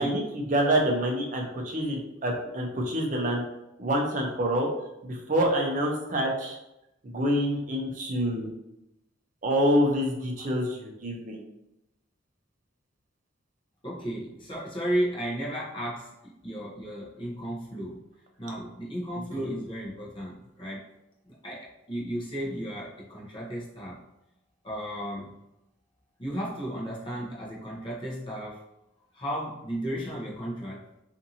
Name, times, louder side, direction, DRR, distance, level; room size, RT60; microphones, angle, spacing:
voice 1, 0.0-3.4 3.8-4.7 5.0-6.6 7.0-8.5 9.4-11.4 19.4-19.5, equal, 40° right, 0 dB, 0.5 m, -26 dB
voice 2, 13.8-18.0 18.4-20.9 21.2-24.0 24.6-25.3 26.2-28.6 29.1-30.8, equal, 25° left, -5 dB, 0.7 m, -34 dB
2.6 x 2.5 x 2.7 m, 0.89 s
head